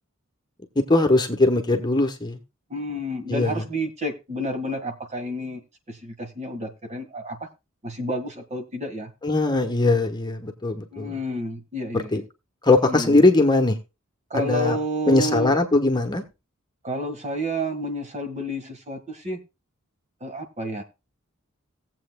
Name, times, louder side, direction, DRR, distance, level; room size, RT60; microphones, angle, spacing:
voice 1, 0.7-2.4 3.3-3.6 9.2-11.2 11.9-12.2 12.6-13.8 14.3-14.8 15.1-16.2, left 2 dB, 20° left, 1.2 m, -20 dB
voice 2, 2.7-5.6 5.9-7.5 7.8-9.1 10.9-12.2 12.9-13.2 14.3-15.5 16.8-19.4 20.2-20.8, equal, 35° right, 1.7 m, -30 dB
18.5 x 7.8 x 2.3 m
head